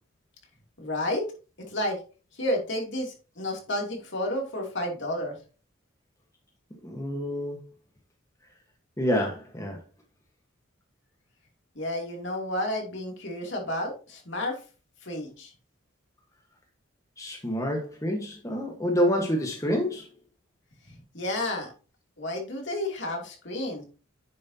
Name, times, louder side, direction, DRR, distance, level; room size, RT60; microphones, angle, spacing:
voice 1, 0.8-1.3 1.6-2.0 2.3-5.4 11.7-14.6 15.0-15.5 20.8-21.7 22.2-23.8, left 1 dB, 65° left, 2.9 m, -31 dB
voice 2, 6.8-7.6 9.0-9.8 17.2-20.1, equal, 15° left, 1.3 m, -27 dB
10.0 x 7.4 x 2.8 m
head